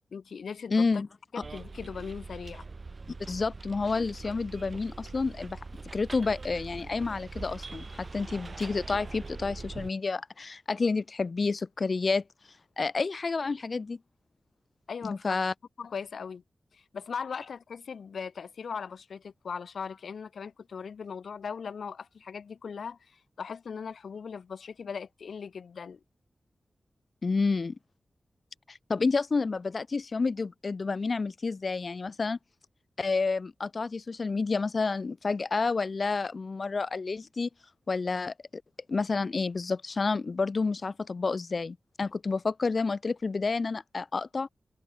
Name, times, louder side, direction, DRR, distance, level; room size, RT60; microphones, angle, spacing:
voice 1, 0.1-1.0 1.3-2.6 14.9-15.3 15.8-16.4 16.9-23.0 23.4-26.0, left 6 dB, 85° left, 1.4 m, -39 dB
voice 2, 0.7-1.1 3.3-5.6 5.9-12.2 12.8-14.0 15.0-15.5 27.2-27.8 28.7-32.4 33.0-37.5 37.9-38.6 38.9-44.5, left 4 dB, 45° left, 2.0 m, -29 dB
Bus, 1.4-9.9, right 3 dB, 40° right, 5.8 m, -42 dB
wide cardioid pair, 135°, 0 cm